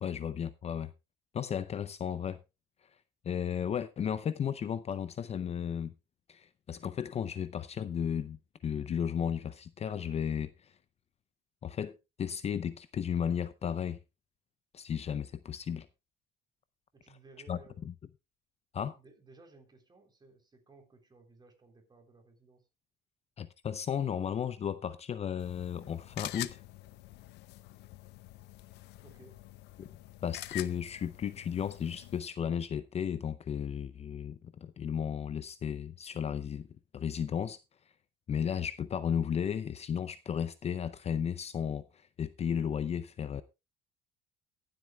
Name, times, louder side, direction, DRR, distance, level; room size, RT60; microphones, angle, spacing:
voice 1, 0.0-0.9 1.3-2.4 3.2-5.9 6.3-10.7 11.6-14.0 14.7-15.9 17.5-17.6 17.8-17.9 18.7-19.0 23.4-26.6 29.8-29.9 30.2-36.7 36.9-37.6 38.3-43.4, left 8 dB, 40° left, 0.5 m, -34 dB
voice 2, 16.9-17.8 18.9-22.7 29.0-29.4, right 3 dB, 25° right, 3.5 m, -58 dB
sound 1, 25.4-32.2, left 16 dB, 80° left, 0.6 m, -46 dB
23.0 x 7.8 x 2.3 m
cardioid pair, 110°, 17 cm